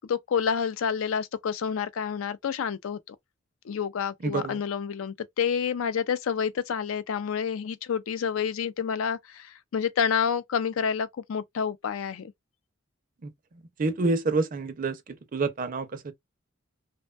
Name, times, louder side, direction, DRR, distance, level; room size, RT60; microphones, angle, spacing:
voice 1, 0.0-3.2 3.6-12.3, left 7 dB, 85° left, 0.4 m, -29 dB
voice 2, 4.2-4.6 13.2-13.3 13.8-15.0 15.3-16.1, right 3 dB, 40° right, 0.4 m, -27 dB
2.6 x 2.1 x 2.3 m
head